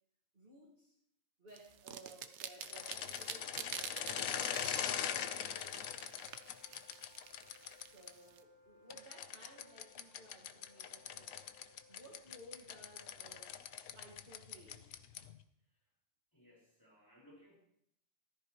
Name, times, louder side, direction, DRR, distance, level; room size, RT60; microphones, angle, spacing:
voice 1, 0.3-1.0 1.4-5.5 7.8-11.4 11.9-13.6 13.9-14.9, right 1 dB, 45° right, -4 dB, 1.9 m, -58 dB
sound 1, 1.5-8.4, right 8 dB, 65° right, 0.9 m, -48 dB
sound 2, 2.6-8.1 8.9-15.4, left 9 dB, 90° left, 1.1 m, -42 dB
Wind instrument woodwind instrument, 2.7-12.6, left 3 dB, 85° right, 1.5 m, -66 dB
voice 2, 16.3-17.5, equal, 15° left, -4 dB, 4.7 m, -63 dB
15.0 x 13.0 x 3.0 m, 0.72 s
omnidirectional pair, 1.3 m